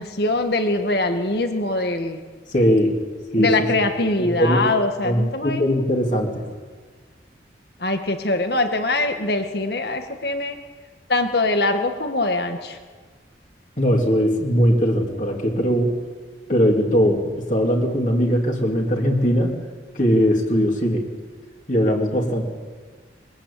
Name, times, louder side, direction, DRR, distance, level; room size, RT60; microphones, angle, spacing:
voice 1, 0.0-2.2 3.4-5.7 7.8-10.6 11.1-12.8, left 2 dB, 60° left, 6 dB, 2.0 m, -23 dB
voice 2, 2.5-2.9 3.3-3.7 4.2-4.6 5.0-6.3 13.8-15.9 16.5-19.5 19.9-21.1 21.7-22.5, equal, 45° left, 0 dB, 3.1 m, -20 dB
23.0 x 20.5 x 8.7 m, 1.5 s
head